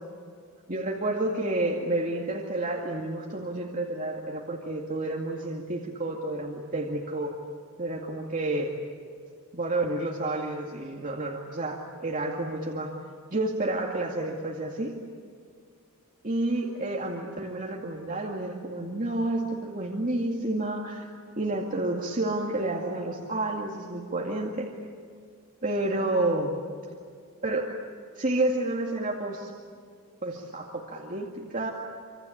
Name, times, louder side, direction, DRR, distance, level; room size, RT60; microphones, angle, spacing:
voice 1, 0.7-7.4 7.8-8.7 9.5-12.9 13.3-15.0 16.2-21.1 21.4-24.7 25.6-26.6 27.4-27.7 28.2-29.5 30.2-31.7, right 2 dB, 35° right, -1 dB, 2.2 m, -30 dB
26.5 x 26.0 x 8.7 m, 2.2 s
head